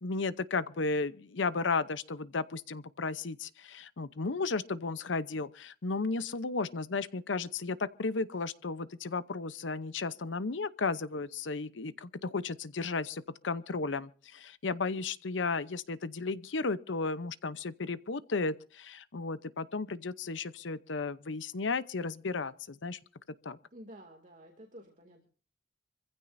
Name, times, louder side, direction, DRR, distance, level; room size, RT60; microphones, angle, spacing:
voice 1, 0.0-23.0 23.4-23.6, left 3 dB, 90° left, 0.8 m, -34 dB
voice 2, 23.7-25.3, equal, 45° right, 2.5 m, -51 dB
26.0 x 15.5 x 2.7 m
head